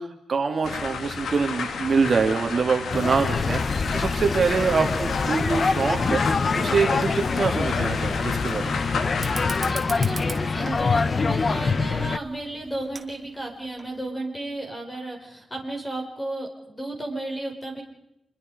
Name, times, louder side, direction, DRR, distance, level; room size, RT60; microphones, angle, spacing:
voice 1, 0.0-9.0, right 5 dB, 45° right, 5 dB, 1.8 m, -25 dB
sound 1, 0.6-9.7, left 5 dB, 75° left, 2.1 m, -32 dB
sound 2, 2.9-12.2, left 4 dB, 40° left, 0.7 m, -25 dB
Fire, 9.1-14.1, right 3 dB, 30° right, 2.2 m, -41 dB
voice 2, 9.7-17.8, right 1 dB, 15° left, 2 dB, 5.3 m, -33 dB
27.0 x 22.5 x 5.1 m, 0.88 s
wide cardioid pair, 115°, 0 cm